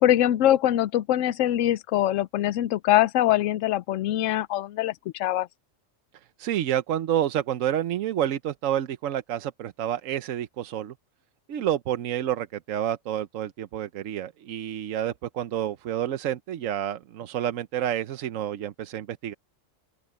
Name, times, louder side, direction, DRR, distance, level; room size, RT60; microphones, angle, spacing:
voice 1, 0.0-5.5, left 13 dB, 75° left, 0.9 m, -23 dB
voice 2, 6.4-10.9 11.5-19.3, right 11 dB, 85° right, 1.1 m, -29 dB
open air
omnidirectional pair, 1.3 m